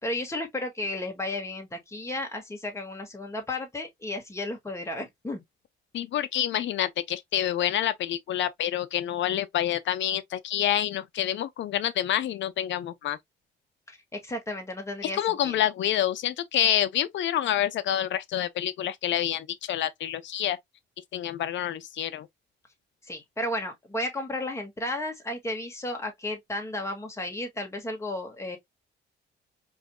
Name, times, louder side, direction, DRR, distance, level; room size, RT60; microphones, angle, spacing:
voice 1, 0.0-5.4 13.9-15.6 23.0-28.6, left 1 dB, 15° left, 1.7 m, -33 dB
voice 2, 5.9-13.2 15.1-20.6 21.1-22.3, left 11 dB, 70° left, 0.6 m, -27 dB
4.7 x 3.1 x 2.2 m
cardioid pair, 90°, 20 cm